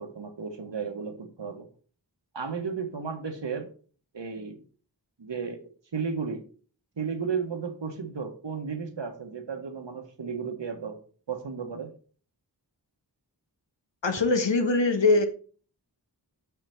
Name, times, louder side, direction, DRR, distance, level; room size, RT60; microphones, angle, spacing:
voice 1, 0.0-1.7 2.3-3.7 4.1-4.6 5.2-6.4 7.0-11.0 11.3-11.9, right 5 dB, 80° right, 5 dB, 1.3 m, -34 dB
voice 2, 14.0-15.3, left 3 dB, 85° left, 6 dB, 1.2 m, -22 dB
6.0 x 5.7 x 4.4 m, 0.41 s
wide cardioid pair, 45°, 43 cm